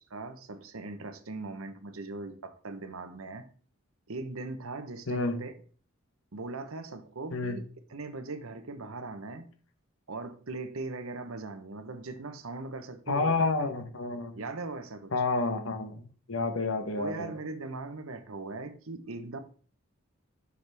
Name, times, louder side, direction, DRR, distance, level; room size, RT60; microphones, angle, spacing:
voice 1, 0.1-3.5 4.1-5.5 6.3-7.6 7.9-9.5 10.1-13.5 14.4-15.1 16.9-19.4, right 3 dB, 90° right, 0.9 m, -39 dB
voice 2, 5.1-5.4 7.3-7.6 13.1-14.4 15.1-17.3, left 3 dB, 75° left, 1.0 m, -30 dB
7.0 x 6.5 x 3.4 m
head